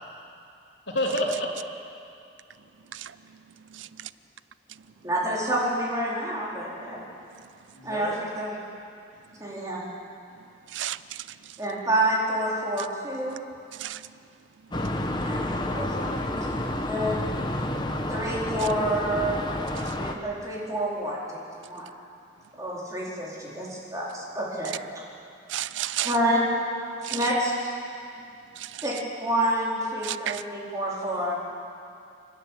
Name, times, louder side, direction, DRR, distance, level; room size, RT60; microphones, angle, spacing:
voice 1, 0.9-1.6 7.7-8.2 14.7-14.9 15.1-16.3, left 1 dB, 80° left, -2 dB, 3.6 m, -31 dB
voice 2, 3.7-4.1 10.7-11.3 13.8-14.0 19.9-20.0 25.5-26.1 27.0-27.2 28.6-28.8 30.0-30.4, right 12 dB, 90° right, 16 dB, 0.5 m, -33 dB
voice 3, 5.0-7.0 7.8-8.6 9.4-9.9 11.6-13.4 15.2-15.4 15.7-15.9 16.3-16.4 16.9-17.2 18.1-19.4 20.0-21.9 22.6-24.8 26.0-26.4 27.1-27.7 28.8-31.4, right 1 dB, 20° right, -5 dB, 4.3 m, -28 dB
sound 1, 14.7-20.1, left 1 dB, 25° left, 1.2 m, -30 dB
29.0 x 11.0 x 9.2 m, 2.5 s
head